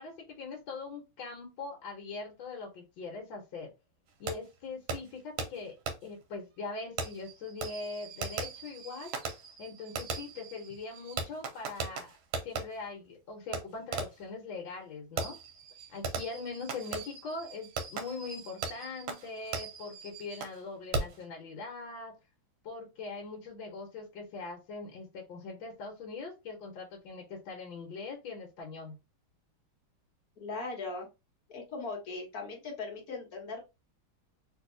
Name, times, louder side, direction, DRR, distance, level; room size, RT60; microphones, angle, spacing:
voice 1, 0.0-3.7 4.2-5.8 6.0-9.1 9.6-12.1 12.4-15.4 15.9-22.1 22.6-29.0, left 3 dB, 70° left, 0 dB, 1.6 m, -42 dB
Fireworks, 4.3-4.4 4.9-5.0 5.4-5.5 5.9-6.0 7.0-12.6 13.5-13.6 13.9-14.2 15.2-20.6 20.9-21.2, right 4 dB, 90° right, 1.6 m, -38 dB
voice 2, 30.4-31.1 31.5-33.6, left 3 dB, 55° left, 0 dB, 1.4 m, -39 dB
3.5 x 2.7 x 2.6 m, 0.25 s
omnidirectional pair, 2.2 m